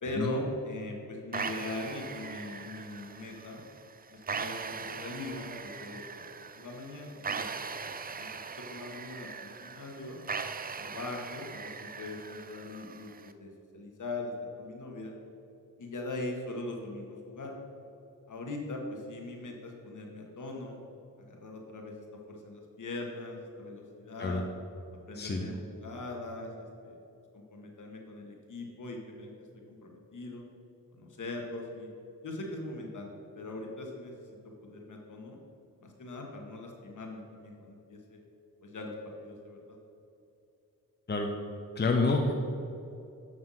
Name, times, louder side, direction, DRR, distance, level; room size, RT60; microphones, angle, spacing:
voice 1, 0.0-3.6 4.1-7.5 7.8-10.2 10.8-15.1 15.8-17.5 18.3-20.8 21.2-22.0 22.3-24.4 25.1-27.0 27.3-29.3 29.7-30.4 30.9-31.9 32.2-35.4 35.8-38.2 38.6-38.9 39.2-39.8, left 2 dB, 60° left, 1 dB, 1.8 m, -41 dB
sound 1, 1.3-13.3, right 5 dB, 25° right, 0.5 m, -40 dB
voice 2, 41.8-42.4, left 3 dB, 30° left, 2 dB, 0.8 m, -28 dB
7.9 x 5.9 x 5.7 m, 2.8 s
cardioid pair, 70°, 34 cm